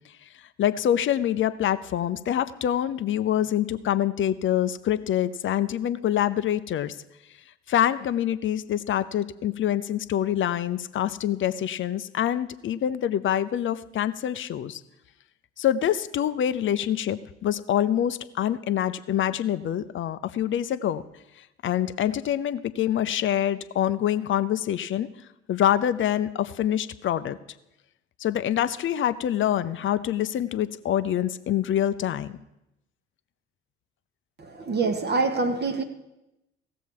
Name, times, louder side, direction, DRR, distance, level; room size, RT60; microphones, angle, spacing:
voice 1, 0.6-7.0 7.7-14.8 15.6-21.0 21.6-25.1 25.5-27.4 28.2-32.4, left 11 dB, 35° left, 14 dB, 0.6 m, -25 dB
voice 2, 34.4-35.8, right 3 dB, 30° right, 7 dB, 1.0 m, -25 dB
16.0 x 7.1 x 4.6 m, 0.89 s
figure-of-eight pair, 55°, 34 cm